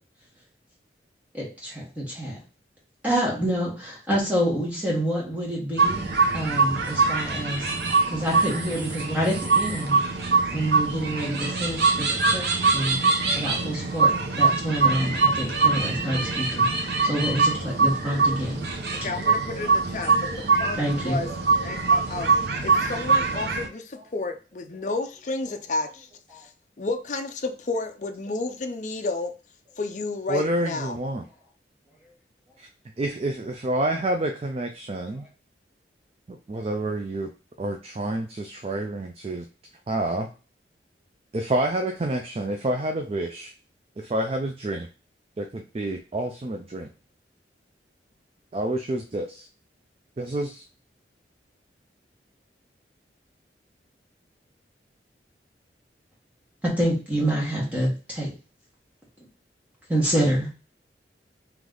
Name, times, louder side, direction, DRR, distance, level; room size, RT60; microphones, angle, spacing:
voice 1, 1.3-2.4 3.0-6.1 6.3-7.7 8.1-10.0 10.5-13.0 13.3-16.7 17.0-18.6 20.8-21.2 26.3-26.4 56.8-58.3 59.9-60.5, right 1 dB, 10° right, 1.4 m, -27 dB
sound 1, 5.8-23.7, right 4 dB, 65° right, 0.7 m, -23 dB
voice 2, 18.9-21.3 21.6-22.3 22.6-26.1 26.3-26.5 26.8-29.4 29.8-31.0, left 3 dB, 45° left, 0.5 m, -31 dB
voice 3, 30.3-31.2 32.6-32.7 33.0-35.3 36.3-37.3 37.6-39.4 39.9-40.3 41.3-43.5 44.0-44.9 45.4-46.9 48.5-49.5 50.2-50.6, right 1 dB, 35° right, 0.4 m, -28 dB
3.3 x 3.1 x 3.7 m
head